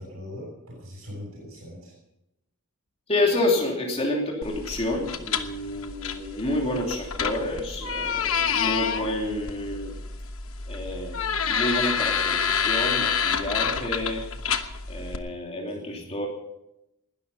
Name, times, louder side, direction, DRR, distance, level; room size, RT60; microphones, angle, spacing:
voice 1, 0.0-1.9 15.9-16.1, left 1 dB, 70° right, -4 dB, 7.1 m, -40 dB
voice 2, 3.1-9.9 10.7-14.3 14.9-16.3, left 1 dB, 30° left, -1 dB, 3.1 m, -29 dB
sound 1, 4.4-15.2, left 7 dB, 65° left, 1.2 m, -28 dB
20.0 x 12.5 x 5.6 m, 0.87 s
head